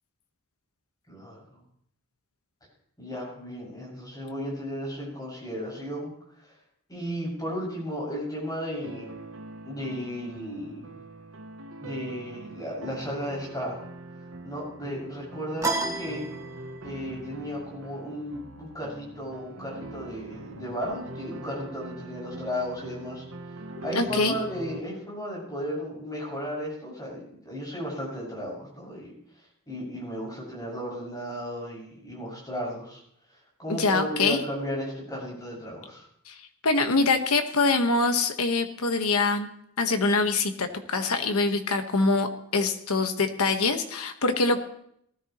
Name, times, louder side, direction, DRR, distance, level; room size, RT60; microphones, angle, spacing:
voice 1, 1.1-1.6 3.0-6.1 6.9-9.1 9.6-10.9 11.8-13.8 14.4-16.2 16.8-23.2 23.8-29.1 29.7-33.0 33.6-36.1, equal, 15° left, -3 dB, 6.4 m, -34 dB
sound 1, 8.8-24.8, right 2 dB, 65° right, 0.9 m, -42 dB
sound 2, 15.6-17.0, right 3 dB, 15° right, 1.7 m, -31 dB
voice 2, 23.9-24.3 33.7-34.4 36.3-36.4 36.6-39.5 39.8-44.6, left 3 dB, 85° left, 6 dB, 1.4 m, -24 dB
19.0 x 13.5 x 3.1 m, 0.70 s
head